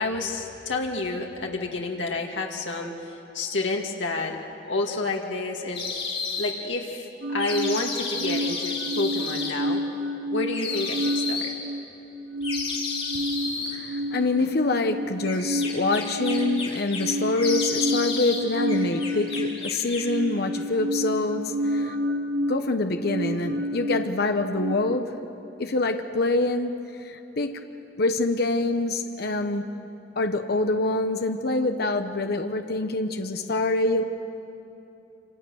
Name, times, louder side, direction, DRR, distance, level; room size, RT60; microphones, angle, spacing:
voice 1, 0.0-4.4 4.7-5.8 6.4-9.8 10.3-11.5, left 2 dB, 90° left, 0 dB, 2.3 m, -29 dB
sound 1, 5.7-6.5 7.4-9.5 10.5-11.5 12.4-13.8 15.2-17.1 17.4-18.4 18.7-20.1, left 4 dB, 35° left, 3.7 m, -32 dB
sound 2, 7.2-24.8, equal, 50° right, 1.6 m, -30 dB
voice 2, 13.1-22.0 22.5-25.3 25.6-27.6 28.0-29.7 30.2-34.0, left 2 dB, 60° left, 6 dB, 1.0 m, -26 dB
27.5 x 27.0 x 6.5 m, 2.9 s
head